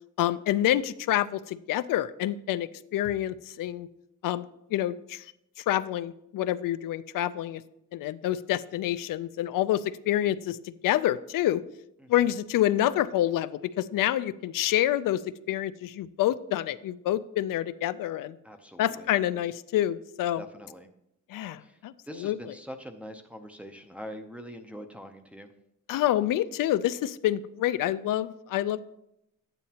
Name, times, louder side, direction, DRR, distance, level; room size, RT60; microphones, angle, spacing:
voice 1, 0.2-3.9 4.2-4.4 4.7-5.2 5.7-7.6 7.9-10.6 10.8-11.6 12.1-15.2 15.5-18.3 18.8-20.4 21.3-21.9 22.2-22.4 25.9-28.8, left 13 dB, 80° left, 14 dB, 0.5 m, -27 dB
voice 2, 18.4-19.1 20.4-20.9 21.6-21.8 22.1-25.5, equal, 5° right, 3 dB, 0.5 m, -43 dB
11.5 x 9.1 x 2.8 m, 0.82 s
wide cardioid pair, 170°, 32 cm